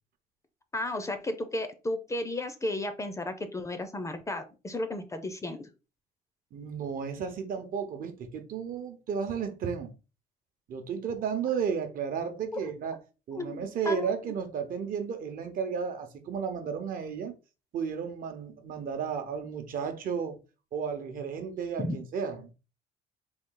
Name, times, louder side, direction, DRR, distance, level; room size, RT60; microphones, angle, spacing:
voice 1, 0.7-5.7 12.5-12.6 13.3-14.1 21.8-22.0, left 1 dB, 20° left, 0.5 m, -34 dB
voice 2, 6.5-9.9 10.7-13.0 13.3-17.3 17.7-20.4 20.7-22.5, right 6 dB, 55° right, 0.8 m, -33 dB
4.0 x 2.3 x 3.8 m
cardioid pair, 110°, 17 cm